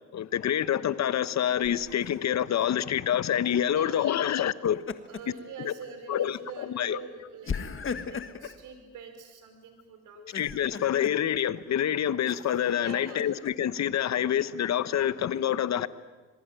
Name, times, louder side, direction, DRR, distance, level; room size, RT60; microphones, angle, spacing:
voice 1, 0.1-4.8 5.6-5.7 6.1-7.0 10.3-15.9, left 10 dB, 60° left, 1.2 m, -27 dB
Laughter, 1.6-2.2 4.5-5.4 5.8-6.0 7.4-8.6 10.2-11.2 12.3-13.5, left 6 dB, 40° left, 1.6 m, -37 dB
voice 2, 3.7-4.3 5.0-10.2 11.0-11.1 12.8-13.2, right 5 dB, 80° right, 5.3 m, -45 dB
26.0 x 21.5 x 9.1 m
cardioid pair, 80°, 30 cm